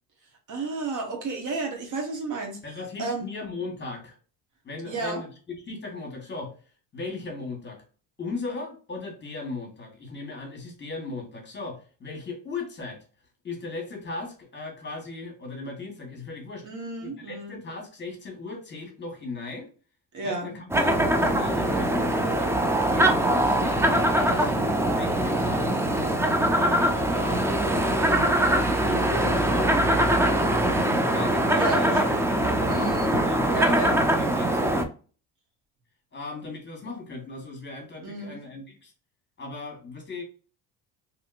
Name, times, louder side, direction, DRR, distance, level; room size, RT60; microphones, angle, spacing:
voice 1, 0.5-2.6 3.0-3.3 4.9-5.2 16.6-17.6 20.1-20.5 24.2-24.6 31.6-32.2 32.7-33.2 33.5-34.0 38.0-38.4, right 3 dB, 50° right, 3 dB, 1.2 m, -32 dB
voice 2, 2.6-4.2 4.6-6.5 6.9-7.8 8.2-13.0 13.4-16.7 17.0-19.7 20.2-25.7 26.5-28.5 28.8-30.3 31.1-32.0 32.3-34.9 36.1-38.9 39.4-40.2, left 3 dB, 30° left, 2 dB, 1.4 m, -38 dB
sound 1, 20.7-34.9, right 1 dB, 5° right, 0.4 m, -22 dB
3.0 x 2.7 x 2.4 m, 0.38 s
supercardioid pair, 85°, 39 cm